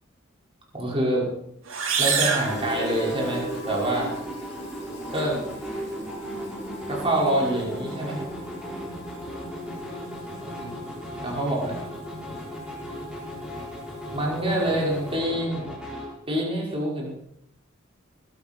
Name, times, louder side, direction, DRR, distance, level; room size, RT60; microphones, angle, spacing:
voice 1, 0.7-1.3 2.0-4.2 5.1-5.4 6.9-8.2 10.4-10.7 11.2-11.8 14.1-15.7 16.3-17.1, right 1 dB, 30° right, -3 dB, 5.6 m, -26 dB
sound 1, 1.6-3.5, right 6 dB, 80° right, 2.8 m, -26 dB
Fill (with liquid), 2.3-15.4, left 1 dB, 35° left, 4.9 m, -40 dB
sound 2, 2.4-16.1, equal, 5° right, 5.0 m, -36 dB
20.5 x 12.5 x 4.6 m, 0.74 s
head